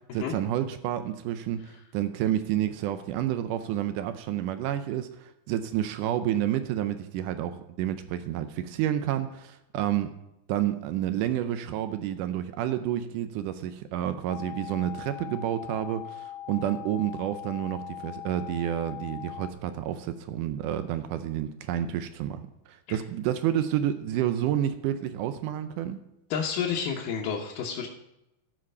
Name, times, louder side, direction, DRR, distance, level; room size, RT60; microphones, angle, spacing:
voice 1, 0.1-10.1 10.5-26.0, right 11 dB, 80° right, 10 dB, 1.9 m, -29 dB
sound 1, 14.3-19.5, left 12 dB, 90° left, 1.9 m, -41 dB
voice 2, 26.3-27.9, left 7 dB, 70° left, -2 dB, 2.3 m, -30 dB
13.5 x 5.1 x 5.4 m, 0.89 s
omnidirectional pair, 4.3 m